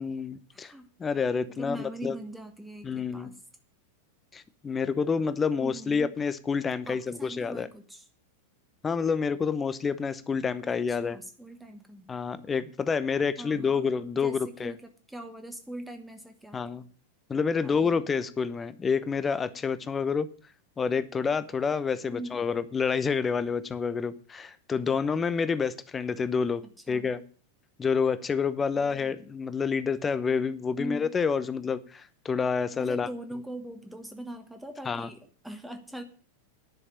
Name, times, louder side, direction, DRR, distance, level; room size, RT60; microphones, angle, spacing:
voice 1, 0.0-0.7 1.0-2.1 2.8-3.3 4.3-7.7 8.8-11.2 12.1-14.7 16.5-16.8 17.3-20.3 20.8-26.6 26.9-27.2 27.8-33.1 34.9-35.1, left 5 dB, 20° left, 14 dB, 0.9 m, -28 dB
voice 2, 0.5-0.9 1.5-3.4 5.6-6.1 6.9-8.1 10.7-12.1 13.4-13.9 14.2-16.6 17.6-18.0 22.1-22.4 26.9-27.1 28.8-29.2 30.8-31.1 32.8-36.0, right 1 dB, 5° right, 6 dB, 1.3 m, -41 dB
10.5 x 6.4 x 8.6 m, 0.41 s
figure-of-eight pair, 90°, 0 cm